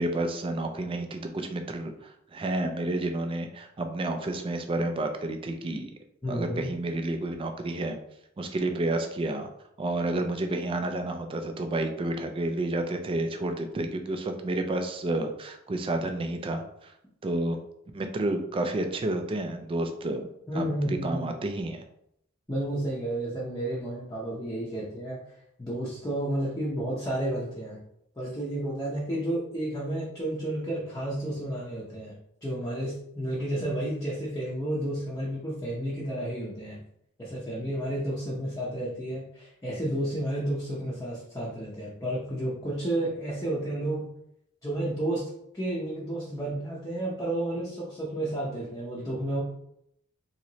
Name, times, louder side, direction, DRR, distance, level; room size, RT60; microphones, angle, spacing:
voice 1, 0.0-5.9 6.3-8.0 8.4-9.5 9.8-16.9 17.2-17.6 17.9-20.3 20.5-21.8 33.6-33.7, right 2 dB, 25° right, 6 dB, 0.3 m, -30 dB
voice 2, 6.2-6.7 20.5-21.3 22.5-25.2 25.6-27.8 28.2-32.1 32.4-36.8 37.2-44.1 44.6-45.3 45.5-49.4, right 1 dB, 15° left, -7 dB, 0.6 m, -31 dB
3.0 x 2.9 x 2.7 m, 0.76 s
head